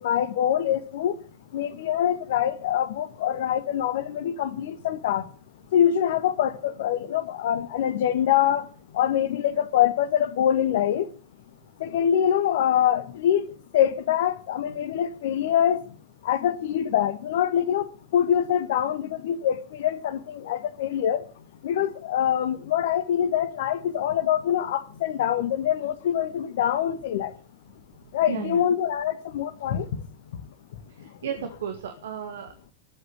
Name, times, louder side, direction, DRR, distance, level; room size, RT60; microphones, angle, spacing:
voice 1, 0.0-1.1 1.5-5.2 5.7-8.6 8.9-11.1 11.8-13.4 13.7-15.8 16.2-17.9 18.1-21.2 21.6-27.3 28.1-29.9, left 10 dB, 55° left, 1.5 m, -24 dB
voice 2, 28.3-28.6 31.0-32.7, right 7 dB, 60° right, 1.7 m, -34 dB
13.0 x 8.1 x 8.7 m
figure-of-eight pair, 90°, 0 cm